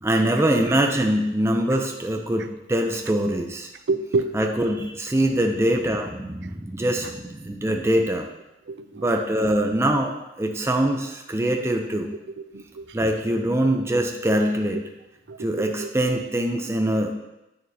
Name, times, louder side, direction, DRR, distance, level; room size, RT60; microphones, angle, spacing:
voice 1, 0.0-3.7 4.3-8.3 9.0-12.1 12.9-14.8 15.4-17.1, right 1 dB, 15° right, 3 dB, 0.5 m, -23 dB
voice 2, 3.9-4.4 7.7-7.8 8.7-9.1 12.3-12.9 15.3-15.9, right 3 dB, 90° right, 11 dB, 0.5 m, -29 dB
9.1 x 6.6 x 2.8 m, 0.93 s
head